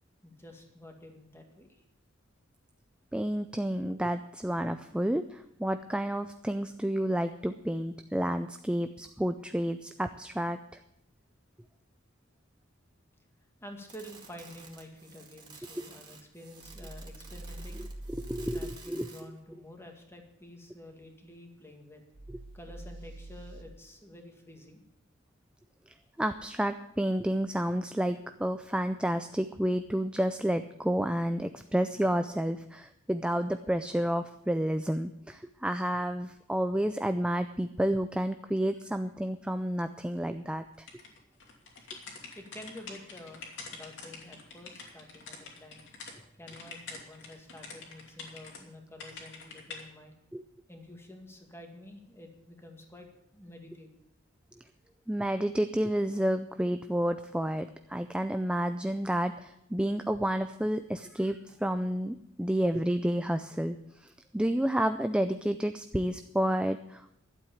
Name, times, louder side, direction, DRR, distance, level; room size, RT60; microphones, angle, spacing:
voice 1, 0.2-1.8 13.6-17.8 18.5-22.0 22.5-24.8 42.0-50.2 50.7-53.9, left 1 dB, 10° left, 3 dB, 2.1 m, -49 dB
voice 2, 3.1-10.6 18.1-19.1 26.2-40.9 50.3-50.4 55.1-67.1, right 1 dB, 5° right, 9 dB, 0.4 m, -30 dB
sound 1, 13.9-19.4, right 4 dB, 20° right, 2.2 m, -52 dB
sound 2, 16.6-18.7 22.1-23.6, right 1 dB, 65° right, 1.6 m, -44 dB
sound 3, 40.9-46.1 46.5-48.6 49.0-49.8, left 4 dB, 65° left, 2.8 m, -46 dB
12.0 x 8.1 x 8.5 m, 0.79 s
head